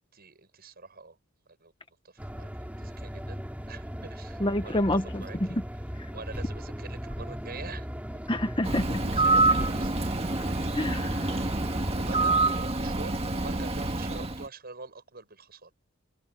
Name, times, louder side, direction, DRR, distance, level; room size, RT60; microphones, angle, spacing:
voice 1, 0.1-1.2 1.5-1.7 2.0-2.5 2.8-5.6 6.1-7.9 9.2-10.4 11.3-11.7 12.0-15.7, right 3 dB, 50° right, 7.7 m, -45 dB
sound 1, 2.2-12.5, equal, 5° right, 4.4 m, -38 dB
voice 2, 4.4-5.5 8.3-9.0 10.7-11.4, left 1 dB, 25° left, 1.3 m, -28 dB
Bird, 8.6-14.5, right 2 dB, 30° right, 1.7 m, -27 dB
open air
head